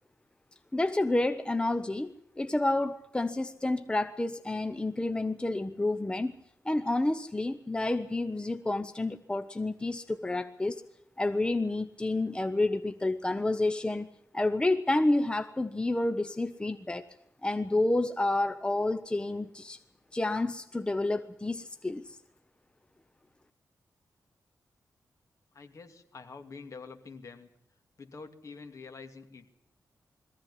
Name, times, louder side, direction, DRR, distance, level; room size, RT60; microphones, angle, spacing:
voice 1, 0.7-6.3 6.6-10.8 11.2-14.1 14.3-17.0 17.4-19.8 20.1-22.2, left 2 dB, 15° left, 11 dB, 0.8 m, -29 dB
voice 2, 25.5-27.5 28.0-29.5, left 4 dB, 55° left, 6 dB, 2.7 m, -46 dB
21.5 x 15.5 x 10.0 m, 0.74 s
wide cardioid pair, 100°, 7 cm